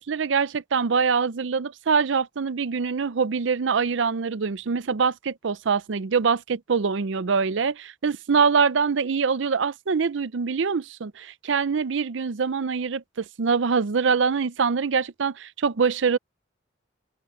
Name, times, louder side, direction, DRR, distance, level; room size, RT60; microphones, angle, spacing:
voice 1, 0.0-16.2, right 5 dB, 75° right, 0.5 m, -24 dB
head